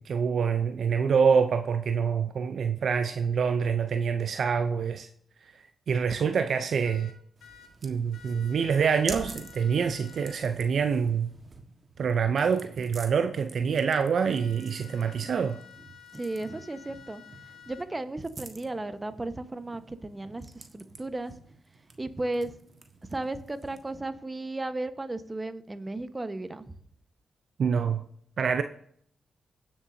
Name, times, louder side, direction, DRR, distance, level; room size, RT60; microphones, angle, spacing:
voice 1, 0.0-5.1 5.9-7.1 7.8-11.3 12.0-15.6 27.6-28.1 28.4-28.6, right 6 dB, 70° right, 0.5 m, -26 dB
sound 1, 6.8-7.7 8.1-10.4 14.2-17.9, left 9 dB, 80° left, 1.2 m, -52 dB
sound 2, 7.4-24.0, right 3 dB, 50° right, 1.5 m, -48 dB
voice 2, 16.1-17.2 17.7-21.3 22.0-22.5 23.1-26.7, right 2 dB, 30° right, 1.1 m, -35 dB
17.0 x 7.2 x 2.7 m
supercardioid pair, 40°, 0 cm